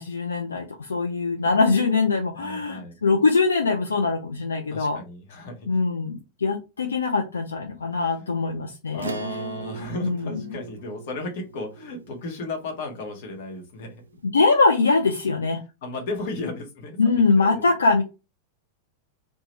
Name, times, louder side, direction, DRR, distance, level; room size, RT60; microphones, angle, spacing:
voice 1, 0.0-5.0 5.7-9.1 10.0-10.6 14.2-15.6 17.0-18.0, left 4 dB, 75° left, 2 dB, 0.5 m, -22 dB
voice 2, 2.4-3.0 4.7-5.7 8.2-8.3 8.9-14.0 15.8-17.7, left 2 dB, 50° left, 3 dB, 1.0 m, -35 dB
Acoustic guitar / Strum, 9.0-13.9, right 6 dB, 75° right, 0.3 m, -39 dB
2.9 x 2.2 x 3.0 m, 0.27 s
figure-of-eight pair, 90°, 0 cm